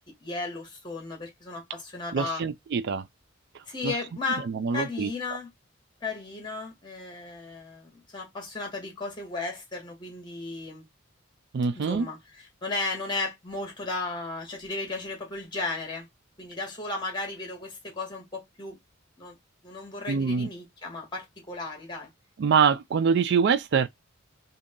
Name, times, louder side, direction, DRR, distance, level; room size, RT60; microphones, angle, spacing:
voice 1, 0.0-2.4 3.7-5.5 6.0-10.8 11.7-16.1 16.4-18.8 19.2-19.4 19.6-22.1, left 3 dB, 20° left, 1.7 m, -35 dB
voice 2, 2.1-3.0 3.8-3.9 4.5-5.1 11.5-12.1 20.1-20.5 22.4-23.9, right 6 dB, 55° right, 0.4 m, -24 dB
3.7 x 2.8 x 3.7 m
head